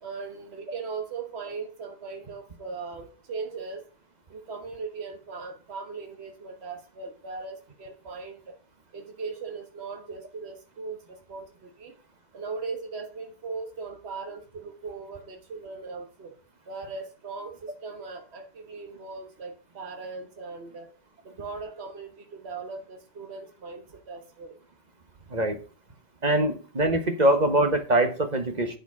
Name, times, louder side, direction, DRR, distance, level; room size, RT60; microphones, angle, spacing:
voice 1, 0.0-3.8 4.3-8.5 8.9-11.9 12.3-16.3 16.7-20.9 21.2-24.6, right 4 dB, 75° right, 3 dB, 1.6 m, -39 dB
voice 2, 26.2-28.8, right 1 dB, 40° right, 7 dB, 1.4 m, -23 dB
9.1 x 6.6 x 4.8 m, 0.35 s
omnidirectional pair, 1.1 m